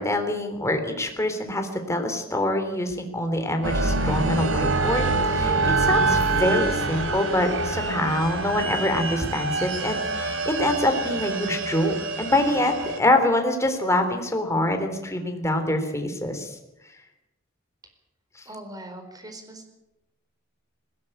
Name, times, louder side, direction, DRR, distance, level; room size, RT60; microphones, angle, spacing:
voice 1, 0.0-16.6, left 1 dB, 15° left, 5 dB, 3.4 m, -25 dB
sound 1, 3.6-13.0, right 3 dB, 65° right, 3.4 m, -25 dB
voice 2, 18.4-19.7, right 1 dB, 20° right, 6 dB, 4.6 m, -41 dB
20.0 x 18.0 x 9.0 m, 0.92 s
head